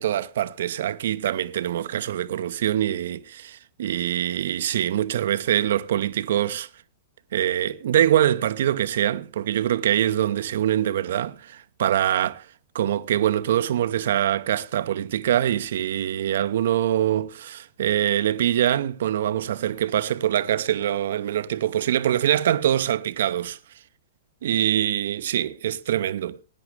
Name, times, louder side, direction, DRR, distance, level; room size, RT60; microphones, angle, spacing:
voice 1, 0.0-6.7 7.3-12.5 12.7-23.6 24.4-26.4, right 11 dB, 55° right, 0.7 m, -24 dB
19.5 x 10.0 x 3.3 m
figure-of-eight pair, 105°, 0 cm